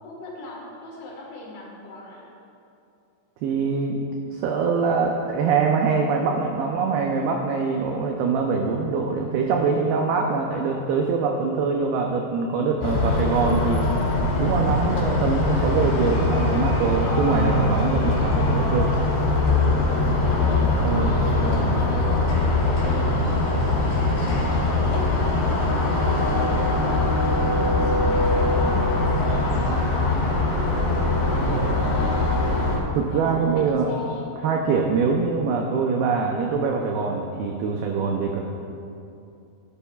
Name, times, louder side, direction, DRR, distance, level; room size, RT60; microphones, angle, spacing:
voice 1, 0.0-2.3 20.2-22.3 22.8-27.1 27.5-30.6 31.2-32.4 33.1-34.3, left 2 dB, 65° left, -3 dB, 3.5 m, -38 dB
voice 2, 3.4-4.1 4.3-13.8 14.4-19.0 20.8-21.8 32.9-33.9 34.4-38.4, right 5 dB, 85° right, 1 dB, 2.2 m, -24 dB
sound 1, 12.8-32.8, left 2 dB, 80° left, 4.6 m, -22 dB
15.5 x 11.0 x 2.4 m, 2.7 s
omnidirectional pair, 5.3 m